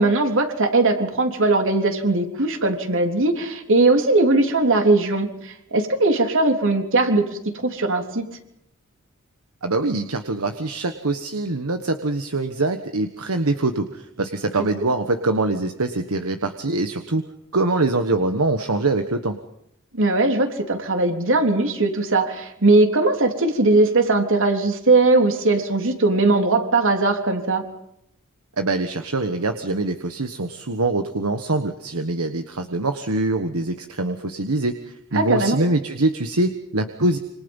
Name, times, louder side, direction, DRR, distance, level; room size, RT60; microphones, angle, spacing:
voice 1, 0.0-7.2 7.5-8.2 19.9-27.6 35.1-35.6, right 2 dB, 65° right, 4 dB, 3.5 m, -19 dB
voice 2, 9.6-17.2 17.5-19.3 28.6-37.2, right 2 dB, 80° right, 7 dB, 1.4 m, -24 dB
27.5 x 26.0 x 5.6 m, 0.79 s
head